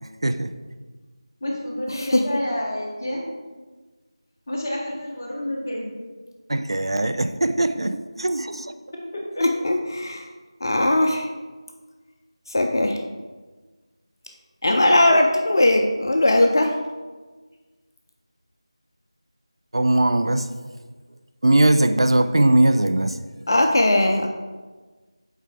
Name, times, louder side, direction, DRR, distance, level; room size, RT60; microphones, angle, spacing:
voice 1, 1.4-3.3 4.5-6.0 9.3-9.4, left 1 dB, 25° left, -5 dB, 1.4 m, -29 dB
voice 2, 6.5-8.7 19.7-20.5 21.4-23.2, right 1 dB, 60° right, 10 dB, 0.4 m, -20 dB
voice 3, 9.4-10.2 10.6-11.3 12.5-13.0 14.6-16.7 23.5-24.3, left 1 dB, 45° left, 3 dB, 0.5 m, -19 dB
8.0 x 4.6 x 3.5 m, 1.3 s
figure-of-eight pair, 170°, 3 cm